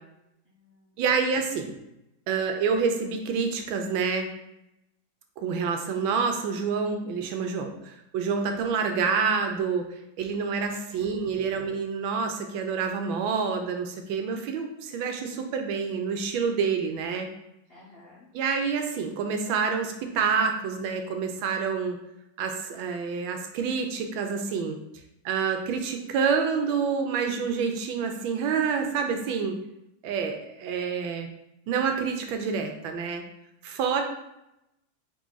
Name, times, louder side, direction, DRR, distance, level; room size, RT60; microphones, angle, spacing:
voice 1, 0.5-1.0 10.9-11.4 17.7-18.3, left 2 dB, 85° left, -4 dB, 0.5 m, -54 dB
voice 2, 1.0-1.8 2.3-4.3 5.4-9.9 10.2-17.3 18.3-22.0 22.4-24.8 25.2-29.6 30.0-31.3 31.7-33.2 33.6-34.0, right 5 dB, 90° right, 5 dB, 1.4 m, -27 dB
3.8 x 3.1 x 3.8 m, 0.86 s
omnidirectional pair, 2.1 m